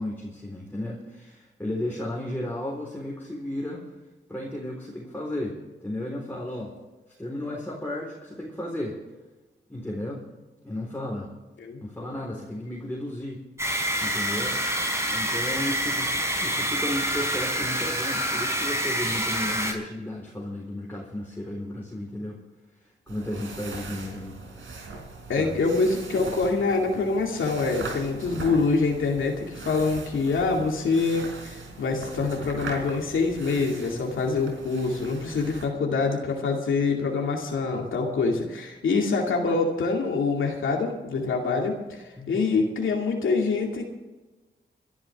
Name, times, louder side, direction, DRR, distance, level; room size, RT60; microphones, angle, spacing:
voice 1, 0.0-3.8 4.3-6.7 7.2-9.0 9.7-10.2 10.6-11.3 11.8-13.4 14.0-14.6 15.1-22.4 23.1-24.4 25.4-25.6 42.2-42.6, left 1 dB, 10° left, -3 dB, 4.1 m, -34 dB
sound 1, 13.6-19.7, equal, 15° right, 4.6 m, -27 dB
sound 2, 23.1-35.7, right 3 dB, 80° right, 3.8 m, -40 dB
voice 2, 25.3-43.9, left 4 dB, 85° left, 0 dB, 2.4 m, -25 dB
26.5 x 11.0 x 3.6 m, 1.2 s
cardioid pair, 60°, 20 cm